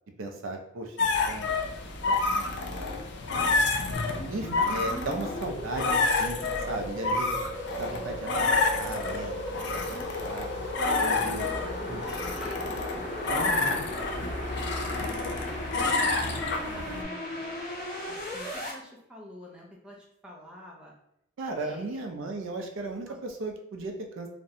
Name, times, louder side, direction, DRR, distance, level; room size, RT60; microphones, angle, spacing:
voice 1, 0.2-1.0 1.3-1.6 2.1-3.0 4.3-6.4 6.7-7.4 7.8-8.5 8.7-9.6 9.9-10.5 11.0-11.5 11.9-12.0 13.3-13.9 15.0-15.3 21.4-24.3, right 2 dB, 75° right, 3 dB, 0.4 m, -36 dB
sound 1, 1.0-17.0, left 3 dB, 55° left, 0.3 m, -29 dB
sound 2, 3.9-18.7, left 1 dB, 40° left, 0.8 m, -37 dB
voice 2, 11.2-14.6 15.0-15.2 15.7-17.6 18.1-20.9 21.6-22.0 23.1-23.2, left 1 dB, 5° right, -3 dB, 0.4 m, -47 dB
2.5 x 2.1 x 2.7 m, 0.79 s
head